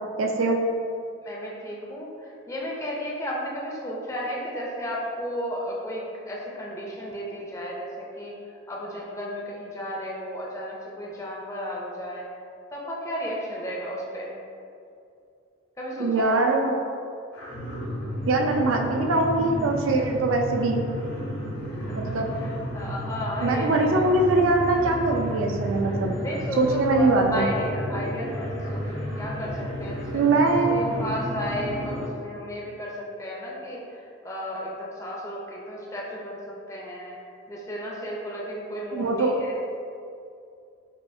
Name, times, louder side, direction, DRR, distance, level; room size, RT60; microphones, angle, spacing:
voice 1, 0.2-0.6 16.0-16.8 18.3-20.8 21.9-22.3 23.4-26.1 26.6-27.5 30.1-31.1 38.9-39.3, right 2 dB, 90° right, 2 dB, 0.5 m, -22 dB
voice 2, 1.2-8.4 8.7-12.3 12.7-14.3 15.8-16.4 22.0-24.0 24.8-25.0 26.2-30.2 30.6-37.1 37.5-39.5, equal, 15° left, -4 dB, 0.4 m, -34 dB
sound 1, 17.3-32.1, equal, 70° left, 0.9 m, -32 dB
5.4 x 2.4 x 2.6 m, 2.5 s
head